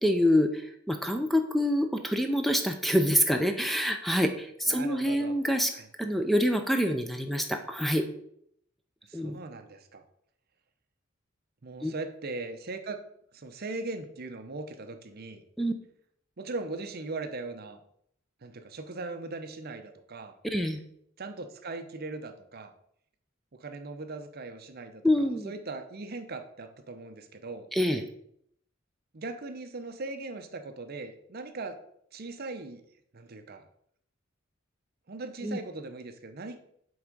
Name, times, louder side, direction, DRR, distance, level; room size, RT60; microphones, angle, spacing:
voice 1, 0.0-5.7 6.0-8.1 9.1-9.4 11.8-11.9 15.6-15.7 20.4-20.8 25.0-25.5 27.7-28.0 35.4-35.6, equal, ahead, 6 dB, 0.5 m, -26 dB
voice 2, 4.7-5.4 5.7-5.9 9.1-10.0 11.6-13.0 13.3-15.4 16.4-17.8 18.4-20.3 21.2-22.7 23.5-27.7 29.1-31.8 32.1-32.8 33.1-33.6 35.1-36.6, right 3 dB, 50° right, 7 dB, 0.7 m, -39 dB
7.8 x 3.6 x 5.2 m, 0.69 s
head